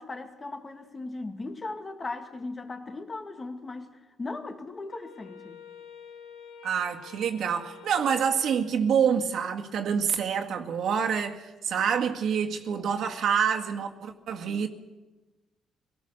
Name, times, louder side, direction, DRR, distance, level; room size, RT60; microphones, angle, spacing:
voice 1, 0.0-5.6, left 3 dB, 30° left, 2.2 m, -38 dB
Wind instrument woodwind instrument, 4.9-9.3, left 6 dB, 85° left, 2.5 m, -49 dB
voice 2, 6.6-14.7, right 7 dB, 70° right, 2.0 m, -27 dB
24.5 x 18.0 x 6.7 m
cardioid pair, 90°, 0 cm